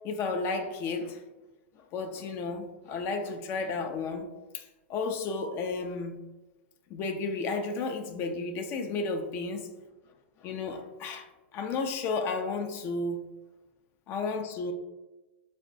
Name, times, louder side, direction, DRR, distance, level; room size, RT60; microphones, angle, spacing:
voice 1, 0.0-1.2 1.9-4.3 4.5-4.6 4.9-6.2 6.9-9.7 10.4-11.3 11.5-13.2 14.1-14.7, left 3 dB, 35° left, 5 dB, 0.4 m, -32 dB
4.4 x 2.0 x 2.6 m, 1.1 s
hypercardioid pair, 100°, 6 cm